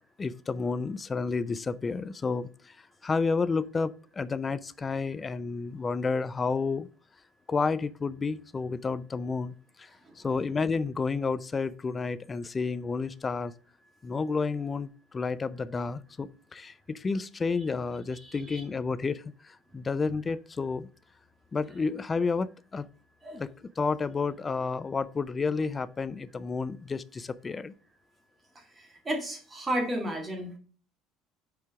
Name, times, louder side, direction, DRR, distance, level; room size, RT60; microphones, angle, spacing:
voice 1, 0.2-2.7 3.0-6.9 7.5-9.9 10.2-13.5 14.0-20.9 21.5-22.9 23.3-23.5 23.8-27.7, left 4 dB, 20° left, 0.4 m, -31 dB
voice 2, 18.2-18.6 23.2-23.4 29.1-30.5, right 1 dB, 20° right, 1.9 m, -32 dB
4.9 x 4.6 x 5.7 m
cardioid pair, 125°, 0 cm